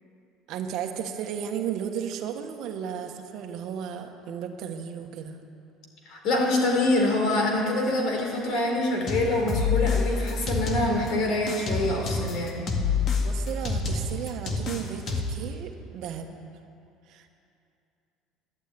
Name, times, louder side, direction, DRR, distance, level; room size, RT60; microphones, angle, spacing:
voice 1, 0.5-5.4 13.2-16.4 17.1-17.3, right 8 dB, 60° right, 5 dB, 1.2 m, -34 dB
voice 2, 6.1-12.7, left 2 dB, 60° left, 1 dB, 3.7 m, -25 dB
sound 1, 9.1-11.1 11.5-15.5, left 4 dB, 40° left, 2.0 m, -27 dB
12.0 x 11.5 x 9.3 m, 2.6 s
cardioid pair, 125°, 0 cm